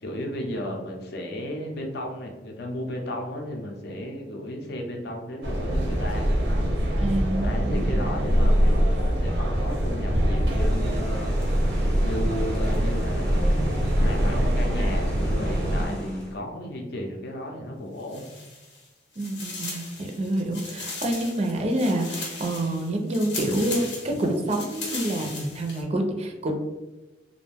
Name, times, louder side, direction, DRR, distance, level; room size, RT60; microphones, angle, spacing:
voice 1, 0.0-6.3 7.4-11.3 12.0-18.3, left 1 dB, 65° left, 1 dB, 0.5 m, -34 dB
sound 1, 5.4-15.8, equal, 85° right, 0.6 m, -23 dB
voice 2, 7.0-8.2 15.9-16.5 19.2-26.6, right 1 dB, 35° right, 3 dB, 0.4 m, -28 dB
sound 2, 10.6-16.4, equal, 5° left, 0.6 m, -42 dB
sound 3, 18.0-18.9 19.1-25.8, left 3 dB, 90° left, 0.8 m, -37 dB
2.5 x 2.1 x 3.3 m, 1.1 s
head